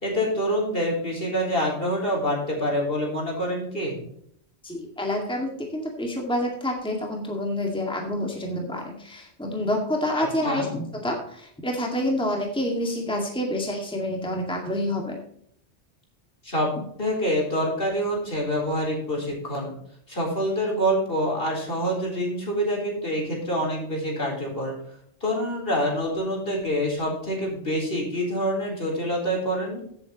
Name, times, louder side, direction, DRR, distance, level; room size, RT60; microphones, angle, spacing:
voice 1, 0.0-4.1 10.2-10.7 16.4-16.7 17.0-19.7 20.1-24.7 25.2-29.8, equal, 55° left, -1 dB, 4.2 m, -26 dB
voice 2, 4.6-15.2, left 1 dB, 5° left, 0 dB, 2.1 m, -28 dB
15.5 x 7.9 x 3.0 m, 0.68 s
omnidirectional pair, 1.2 m